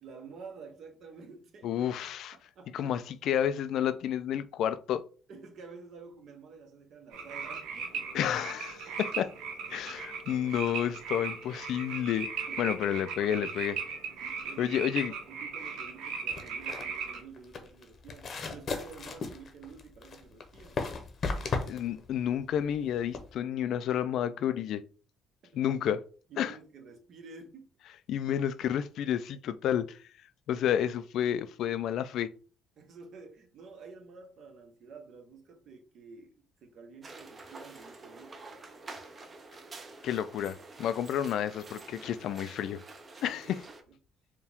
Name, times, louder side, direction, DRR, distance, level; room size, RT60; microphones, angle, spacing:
voice 1, 0.0-1.8 2.3-3.0 5.3-8.1 8.9-9.3 12.5-12.8 14.2-20.9 25.4-25.7 26.3-27.7 29.1-29.2 32.8-38.4 43.2-43.6, right 4 dB, 60° right, 1.0 m, -50 dB
voice 2, 1.6-2.4 2.7-5.0 8.1-9.3 9.7-12.3 12.6-14.0 14.6-15.1 21.7-24.8 25.5-26.0 26.4-26.5 28.1-30.0 30.5-32.3 40.0-42.8 43.2-43.6, left 10 dB, 70° left, 0.3 m, -30 dB
sound 1, 7.1-17.2, right 5 dB, 85° right, 0.9 m, -38 dB
sound 2, 16.3-23.3, left 4 dB, 45° left, 0.8 m, -36 dB
sound 3, 37.0-43.8, right 3 dB, 30° right, 0.7 m, -48 dB
4.5 x 2.3 x 3.5 m
cardioid pair, 105°, 0 cm